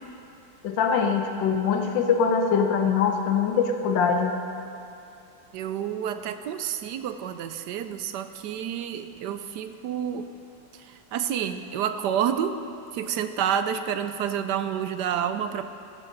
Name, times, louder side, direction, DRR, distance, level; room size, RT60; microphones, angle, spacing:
voice 1, 0.6-4.3, left 6 dB, 90° left, 4 dB, 1.5 m, -23 dB
voice 2, 5.5-10.3 10.7-12.6 12.9-15.6, right 9 dB, 75° right, 9 dB, 1.1 m, -29 dB
15.0 x 13.0 x 4.0 m, 2.8 s
omnidirectional pair, 1.9 m